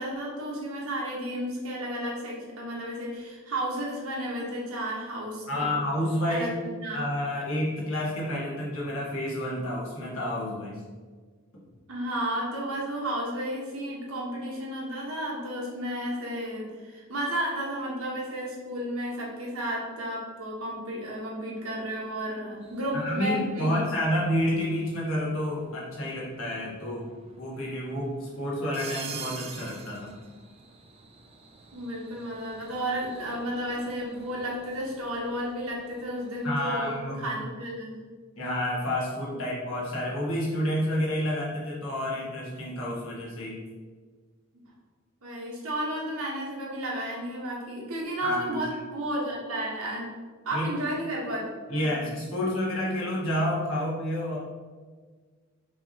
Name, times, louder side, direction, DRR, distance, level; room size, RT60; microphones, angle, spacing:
voice 1, 0.0-5.7 6.3-7.0 11.9-23.8 31.7-38.0 44.5-44.6 45.2-50.1 50.4-51.9, equal, 90° right, -3 dB, 1.1 m, -33 dB
voice 2, 5.5-6.5 6.9-10.8 22.9-27.1 27.4-30.1 36.4-37.3 38.4-43.6 48.2-48.6 50.5-50.7 51.7-54.4, left 1 dB, 75° left, -5 dB, 1.4 m, -29 dB
sound 1, 22.6-36.6, right 5 dB, 30° right, 0.4 m, -48 dB
5.5 x 3.0 x 2.8 m, 1.5 s
head